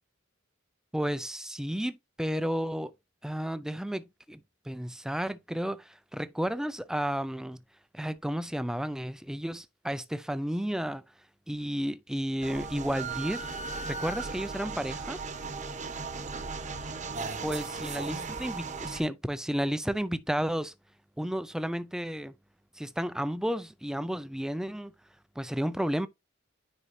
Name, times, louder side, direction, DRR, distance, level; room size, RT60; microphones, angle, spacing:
voice 1, 0.9-2.9 3.2-4.4 4.7-7.6 7.9-11.0 11.5-13.5 13.8-15.2 17.4-20.7 21.2-22.3 22.8-24.9 25.4-26.1, equal, 5° right, 0.3 m, -32 dB
sound 1, 12.4-19.0, right 4 dB, 35° right, 0.9 m, -37 dB
10.0 x 4.3 x 2.6 m
head